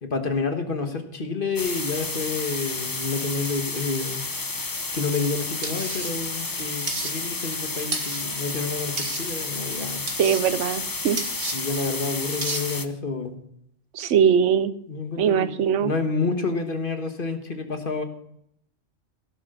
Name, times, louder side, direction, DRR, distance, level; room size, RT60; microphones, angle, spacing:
voice 1, 0.0-4.2 4.9-10.1 11.5-13.4 14.9-15.5 15.8-18.0, left 4 dB, 45° left, 6 dB, 1.5 m, -29 dB
sound 1, 1.6-12.9, left 3 dB, 20° left, 0.7 m, -31 dB
sound 2, 5.6-6.1 6.9-7.1 7.9-8.2 9.0-9.2 10.1-10.4 11.2-11.6 12.4-12.6, right 3 dB, 50° right, 1.9 m, -31 dB
voice 2, 10.2-11.2 13.9-14.7 15.2-15.9, right 8 dB, 75° right, 14 dB, 1.0 m, -21 dB
16.5 x 6.8 x 6.6 m, 0.72 s
omnidirectional pair, 1.3 m